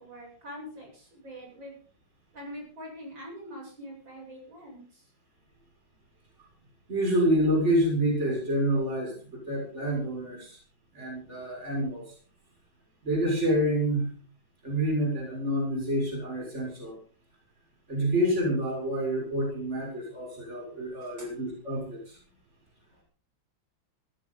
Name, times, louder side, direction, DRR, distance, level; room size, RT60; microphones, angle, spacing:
voice 1, 0.0-1.7 2.3-5.0 21.0-21.3, equal, 65° right, -2 dB, 9.0 m, -44 dB
voice 2, 6.9-10.6 10.9-12.1 13.0-14.1 14.6-17.0 17.9-22.2, right 1 dB, 35° right, -2 dB, 7.0 m, -28 dB
19.0 x 16.5 x 4.1 m, 0.42 s
omnidirectional pair, 2.2 m